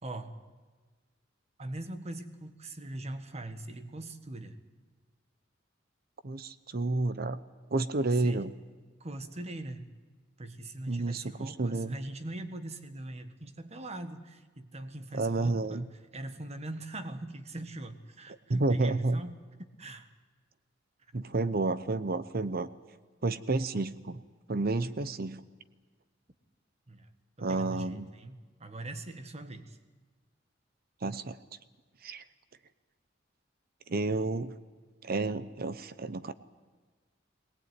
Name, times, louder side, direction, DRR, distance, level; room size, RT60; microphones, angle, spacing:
voice 1, 0.0-0.3 1.6-4.6 8.0-8.5 9.0-9.9 10.4-19.4 19.8-20.1 26.9-27.1 27.4-29.8, right 1 dB, 35° right, 9 dB, 1.6 m, -41 dB
voice 2, 6.2-7.4 7.7-8.5 10.9-12.0 15.1-15.8 18.5-19.2 21.1-22.7 23.2-24.2 24.5-25.4 27.4-28.1 31.0-31.4 32.0-32.2 33.9-34.5 35.0-36.3, right 2 dB, 55° right, 14 dB, 0.8 m, -30 dB
21.5 x 19.5 x 9.4 m, 1.4 s
head